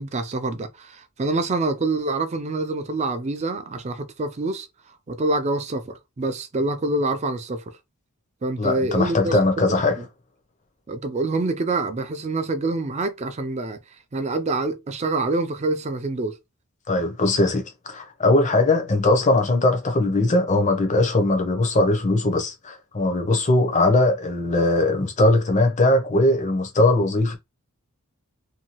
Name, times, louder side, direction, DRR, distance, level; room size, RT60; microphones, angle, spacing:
voice 1, 0.0-4.7 5.1-7.6 8.4-9.4 10.0-10.1 10.9-13.8 14.1-16.4, right 2 dB, 30° right, 0.4 m, -26 dB
voice 2, 8.6-10.0 16.9-27.4, left 2 dB, 35° left, 0.7 m, -20 dB
2.7 x 2.3 x 2.9 m
head